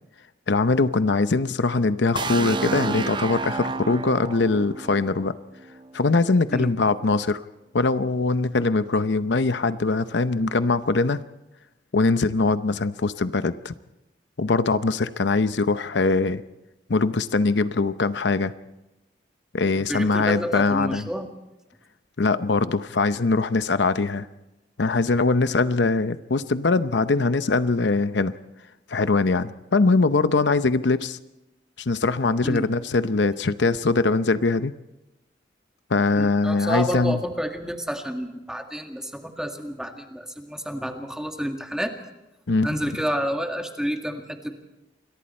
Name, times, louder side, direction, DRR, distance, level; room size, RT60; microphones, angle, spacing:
voice 1, 0.5-5.3 5.9-7.4 7.7-11.2 11.9-13.7 14.4-16.4 16.9-18.5 19.5-21.1 22.2-24.3 24.8-28.3 28.9-31.2 31.9-34.7 35.9-37.2 42.5-42.7, left 3 dB, 80° left, 12 dB, 0.7 m, -22 dB
sound 1, 2.2-6.0, right 3 dB, 25° right, 0.6 m, -30 dB
voice 2, 19.8-21.3 32.4-32.7 36.1-41.9 42.6-44.5, equal, 5° right, 4 dB, 1.9 m, -29 dB
28.0 x 22.5 x 4.4 m, 0.97 s
head